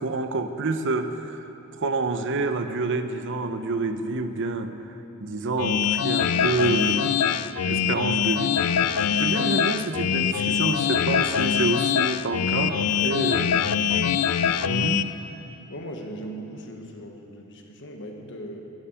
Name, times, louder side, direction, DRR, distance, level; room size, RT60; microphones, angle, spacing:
voice 1, 0.0-1.4 1.8-4.7 5.2-7.2 7.5-8.6 9.2-13.5 14.6-15.1, right 3 dB, 55° right, 9 dB, 0.7 m, -28 dB
sound 1, 5.6-15.0, left 8 dB, 85° left, 0.4 m, -23 dB
voice 2, 15.7-18.6, right 1 dB, 55° left, 3 dB, 1.3 m, -38 dB
11.0 x 9.2 x 8.8 m, 2.9 s
head